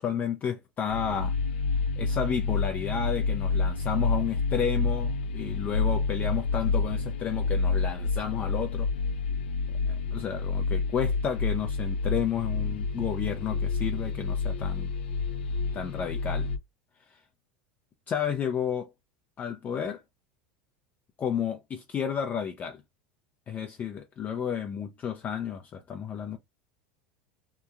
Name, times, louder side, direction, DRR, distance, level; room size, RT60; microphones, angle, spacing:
voice 1, 0.0-1.3 2.0-8.9 9.9-14.9 15.7-16.5 17.1-17.2 18.1-18.9 19.4-20.0 21.2-22.8 23.5-26.4, left 8 dB, 30° left, 0.4 m, -32 dB
sound 1, 0.9-16.6, left 4 dB, 90° left, 0.5 m, -29 dB
2.9 x 2.3 x 2.3 m
supercardioid pair, 115°, 5 cm